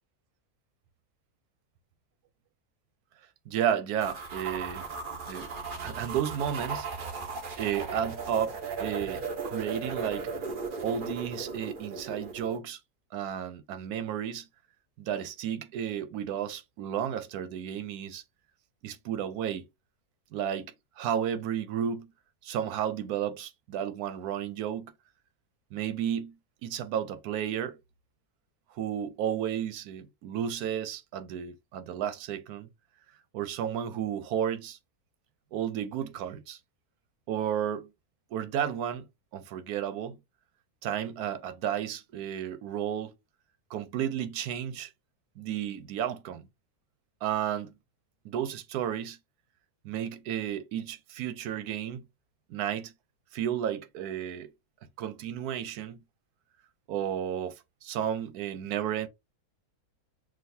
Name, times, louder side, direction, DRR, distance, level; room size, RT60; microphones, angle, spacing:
voice 1, 3.5-4.9 5.3-5.5 5.8-7.2 7.6-10.3 10.8-12.8 13.1-14.5 15.0-18.2 18.8-19.7 20.3-22.1 22.4-24.9 25.7-26.4 26.6-27.8 28.8-32.7 33.3-34.8 35.5-36.6 37.3-37.9 38.3-39.0 39.3-40.2 40.8-43.1 43.7-44.9 45.4-46.5 47.2-47.7 48.2-49.2 49.8-52.0 52.5-52.9 53.3-54.5 55.0-56.0 56.9-59.1, right 9 dB, 85° right, 1.1 m, -32 dB
sound 1, 4.0-12.6, right 4 dB, 45° right, 0.8 m, -37 dB
6.3 x 2.3 x 2.6 m
omnidirectional pair, 1.6 m